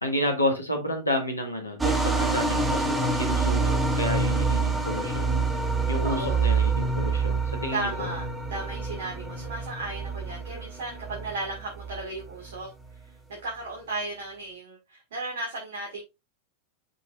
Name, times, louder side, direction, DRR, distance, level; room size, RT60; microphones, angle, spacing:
voice 1, 0.0-5.4 5.9-8.1, left 1 dB, 80° left, 1.8 m, -30 dB
sound 1, 1.8-12.6, right 4 dB, 10° right, 1.4 m, -27 dB
voice 2, 1.9-2.3 6.0-6.5 7.7-12.7 13.3-16.0, right 2 dB, 60° right, 1.8 m, -35 dB
7.4 x 5.2 x 2.5 m
figure-of-eight pair, 90°, 0 cm